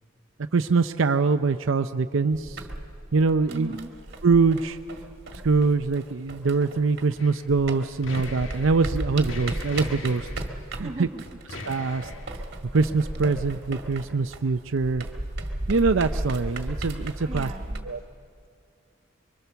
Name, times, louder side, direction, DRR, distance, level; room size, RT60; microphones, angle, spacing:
voice 1, 0.5-2.7 3.1-3.8 4.2-4.8 5.4-10.3 10.8-11.1 11.7-12.1 12.7-15.1 15.7-17.5 17.8-18.0, right 4 dB, 75° right, 9 dB, 0.6 m, -23 dB
sound 1, 2.3-7.2 7.5-17.8, right 1 dB, 55° right, 1.8 m, -35 dB
voice 2, 3.5-3.9 10.8-11.2 17.2-17.9, right 2 dB, 30° right, 4 dB, 1.2 m, -37 dB
sound 2, 7.2-7.5 7.8-8.9 9.2-10.5 11.5-12.3, left 2 dB, 70° left, 1.5 m, -40 dB
24.5 x 23.5 x 6.9 m, 2.4 s
head